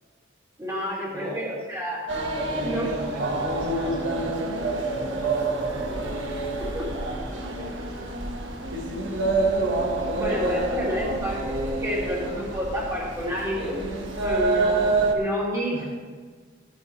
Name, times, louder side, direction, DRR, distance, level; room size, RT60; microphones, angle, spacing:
voice 1, 0.6-2.1 2.6-2.9 6.7-6.9 10.1-13.8 14.2-15.8, equal, 15° right, -7 dB, 3.2 m, -29 dB
voice 2, 1.1-1.5 2.3-7.9 15.7-15.8, equal, 40° right, -9 dB, 2.3 m, -37 dB
sound 1, 2.1-15.1, right 2 dB, 70° right, 1.4 m, -27 dB
16.0 x 8.8 x 3.2 m, 1.5 s
head